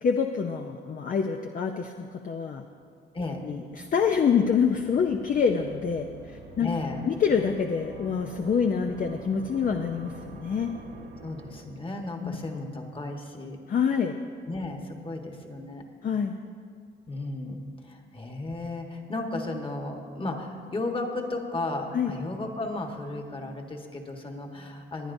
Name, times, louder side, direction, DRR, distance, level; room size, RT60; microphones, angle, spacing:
voice 1, 0.0-2.6 3.4-6.7 7.0-10.7 12.2-12.4 13.7-14.2 16.0-16.4 21.9-22.1, left 6 dB, 45° left, 4 dB, 0.6 m, -26 dB
voice 2, 3.1-3.5 6.6-7.1 11.2-13.6 14.5-15.8 17.1-25.1, left 2 dB, 25° left, 3 dB, 1.5 m, -34 dB
sound 1, 3.7-12.2, right 4 dB, 70° right, 1.4 m, -47 dB
21.5 x 9.5 x 2.7 m, 2.1 s
cardioid pair, 90°, 20 cm